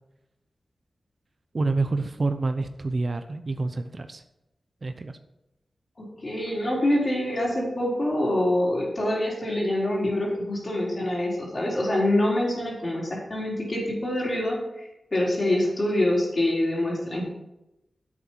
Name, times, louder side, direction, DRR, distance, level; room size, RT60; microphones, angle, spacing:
voice 1, 1.5-4.2 4.8-5.2, right 3 dB, 45° right, 9 dB, 0.8 m, -27 dB
voice 2, 6.0-17.3, left 1 dB, 45° left, -3 dB, 4.3 m, -25 dB
10.0 x 8.4 x 4.7 m, 0.91 s
wide cardioid pair, 80°, 0 cm